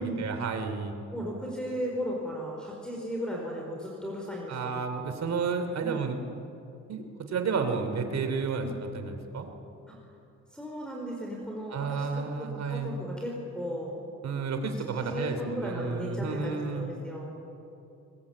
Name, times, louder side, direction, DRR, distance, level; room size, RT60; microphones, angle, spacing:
voice 1, 0.0-0.9 4.5-6.2 6.9-9.5 11.7-12.9 14.2-16.9, right 5 dB, 60° right, 7 dB, 3.2 m, -31 dB
voice 2, 1.1-4.8 5.8-6.0 8.6-8.7 9.9-10.0 10.5-14.0 15.0-17.3, equal, 5° left, -1 dB, 5.0 m, -36 dB
22.5 x 21.5 x 8.6 m, 2.8 s
cardioid pair, 90°, 30 cm